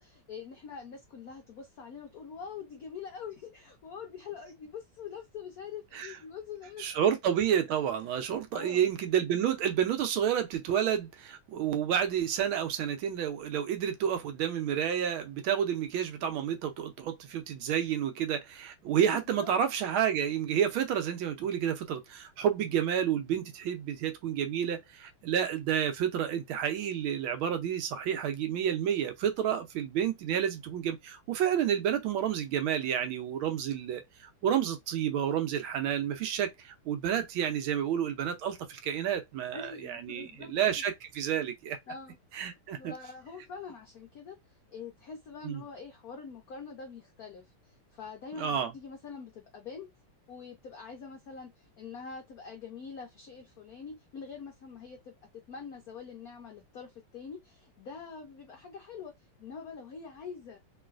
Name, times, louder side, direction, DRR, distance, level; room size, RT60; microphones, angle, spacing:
voice 1, 0.0-6.8 8.5-8.9 19.1-19.5 39.5-40.8 41.9-49.9 50.3-59.1 59.4-60.6, left 6 dB, 75° left, 0.8 m, -45 dB
voice 2, 6.8-41.8 42.3-42.9 45.4-45.6 48.4-48.7, right 9 dB, 75° right, 1.4 m, -30 dB
3.1 x 3.0 x 2.4 m
omnidirectional pair, 2.4 m